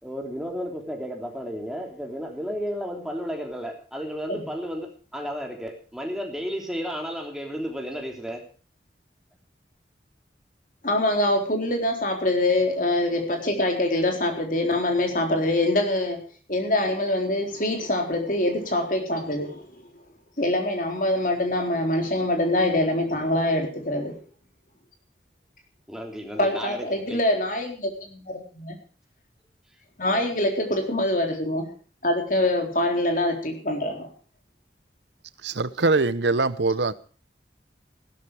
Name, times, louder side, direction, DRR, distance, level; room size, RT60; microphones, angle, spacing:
voice 1, 0.0-8.4 25.9-27.2, equal, 5° right, 2 dB, 3.3 m, -33 dB
voice 2, 10.8-16.2 16.5-19.8 20.4-24.2 26.4-28.8 30.0-31.7 32.0-34.1, left 1 dB, 50° left, 3 dB, 4.0 m, -24 dB
voice 3, 35.4-36.9, right 3 dB, 85° right, 16 dB, 0.9 m, -23 dB
15.5 x 13.0 x 4.9 m, 0.39 s
head